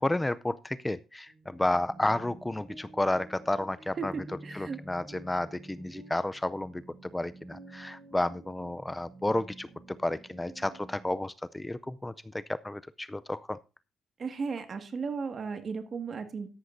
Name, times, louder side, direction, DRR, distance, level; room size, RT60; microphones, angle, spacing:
voice 1, 0.0-4.1 4.5-13.6, left 1 dB, 10° left, 16 dB, 0.4 m, -31 dB
sound 1, 1.3-11.2, right 2 dB, 85° right, 3.2 m, -50 dB
voice 2, 4.0-4.8 14.2-16.5, right 5 dB, 45° right, 8 dB, 1.8 m, -35 dB
13.0 x 11.0 x 2.6 m, 0.30 s
cardioid pair, 90°, 0 cm